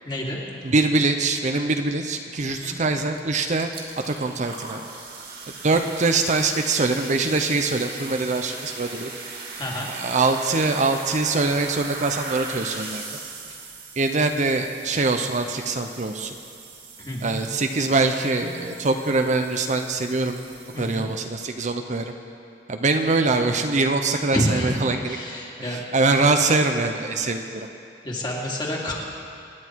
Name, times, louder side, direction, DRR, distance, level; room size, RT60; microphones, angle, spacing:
voice 1, 0.0-0.4 2.5-2.7 9.6-9.9 13.5-13.6 17.0-17.4 20.7-21.0 24.3-24.7 25.1-25.8 28.0-28.9, equal, 25° left, -3 dB, 2.5 m, -28 dB
voice 2, 0.6-3.7 4.1-4.8 5.6-9.1 9.9-13.0 14.0-16.3 17.2-20.4 20.8-22.1 22.7-25.2 25.6-27.7, right 3 dB, 45° right, 5 dB, 0.7 m, -23 dB
sound 1, 3.1-3.2 3.5-21.2, right 4 dB, 60° right, 2.6 m, -39 dB
25.5 x 10.5 x 4.6 m, 2.6 s
head